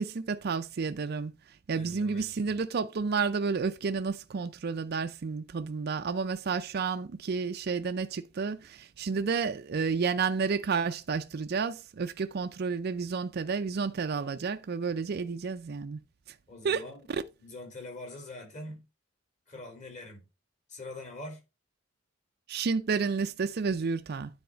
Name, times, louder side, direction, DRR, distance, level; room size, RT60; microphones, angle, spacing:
voice 1, 0.0-1.3 1.7-16.0 16.6-16.8 22.5-24.3, right 5 dB, 50° right, 0.4 m, -31 dB
voice 2, 1.7-2.6 16.5-17.1 17.4-18.8 19.5-20.2 20.7-21.4, left 2 dB, 40° left, 3.6 m, -44 dB
9.4 x 4.2 x 4.9 m
head